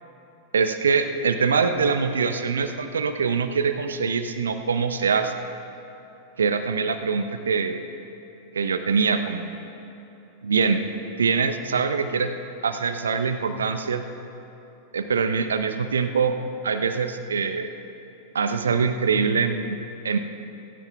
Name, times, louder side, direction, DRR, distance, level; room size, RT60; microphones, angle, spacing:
voice 1, 0.5-5.3 6.4-7.8 8.5-9.5 10.4-10.8 11.2-12.3 12.6-14.1 14.9-16.4 16.6-17.7 18.3-19.8 20.0-20.2, right 5 dB, 70° right, 8 dB, 0.8 m, -23 dB
27.5 x 16.5 x 2.4 m, 3.0 s
figure-of-eight pair, 90°, 0 cm